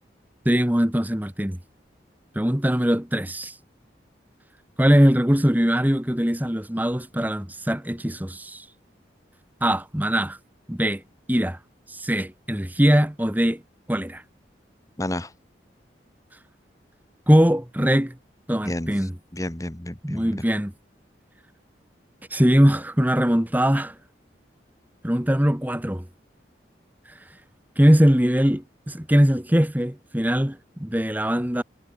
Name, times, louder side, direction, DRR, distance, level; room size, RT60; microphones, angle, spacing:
voice 1, 0.4-1.6 2.3-3.6 4.8-8.7 9.6-10.4 10.7-11.0 11.3-11.6 11.9-13.6 13.9-14.2 17.3-18.2 18.5-19.1 20.0-20.7 22.3-23.9 25.0-26.1 27.8-31.6, equal, 10° right, 1.4 m, -21 dB
voice 2, 15.0-15.3 18.6-20.4, left 1 dB, 20° left, 1.5 m, -31 dB
head